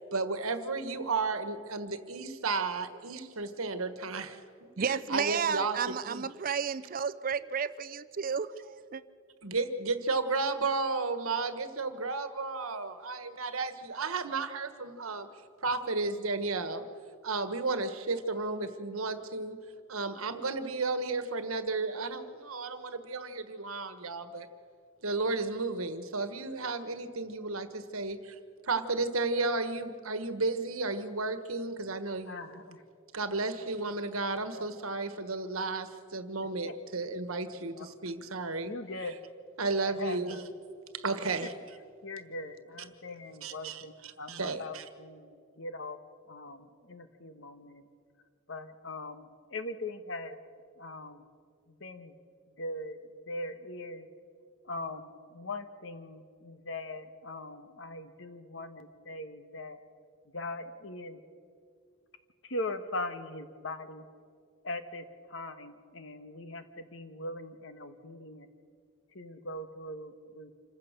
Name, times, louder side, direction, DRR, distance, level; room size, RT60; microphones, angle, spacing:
voice 1, 0.0-4.4 4.8-6.2 9.4-15.3 15.6-16.8 17.2-19.6 19.9-24.5 25.0-28.3 28.7-32.4 33.1-38.7 39.6-40.4 40.9-41.5 43.4-44.8, right 3 dB, 80° right, 1.4 m, -33 dB
voice 2, 4.8-9.0, right 6 dB, 40° right, 0.5 m, -32 dB
voice 3, 32.3-32.8 34.5-34.7 36.6-36.7 37.7-37.9 38.7-39.2 39.8-40.4 42.0-46.0 46.3-47.8 48.5-50.4 50.8-51.2 51.8-52.1 52.6-53.0 53.3-54.1 54.6-59.8 60.3-61.2 62.4-64.0 64.6-65.0 65.3-68.5 69.1-70.5, left 2 dB, 60° left, 1.3 m, -40 dB
27.0 x 15.5 x 6.7 m
head